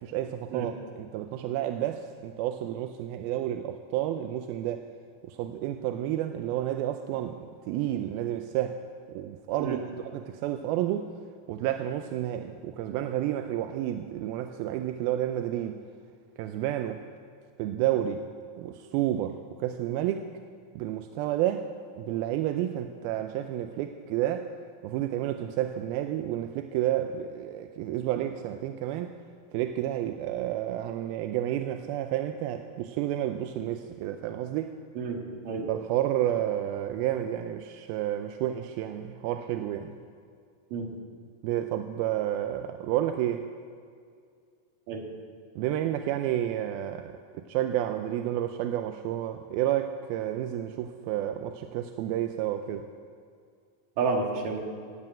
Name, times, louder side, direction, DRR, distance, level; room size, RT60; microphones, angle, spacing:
voice 1, 0.0-4.8 5.3-8.8 9.1-11.1 11.5-15.8 16.4-17.0 17.6-18.2 18.6-20.3 20.8-21.7 22.0-24.5 24.8-29.1 29.5-34.7 35.7-40.0 41.4-43.5 45.6-47.1 47.5-52.9, right 12 dB, 85° right, 7 dB, 2.5 m, -30 dB
voice 2, 34.9-35.7 40.7-40.9 44.9-45.0 54.0-54.6, right 4 dB, 65° right, 0 dB, 3.3 m, -30 dB
17.0 x 7.6 x 8.8 m, 2.2 s
omnidirectional pair, 4.3 m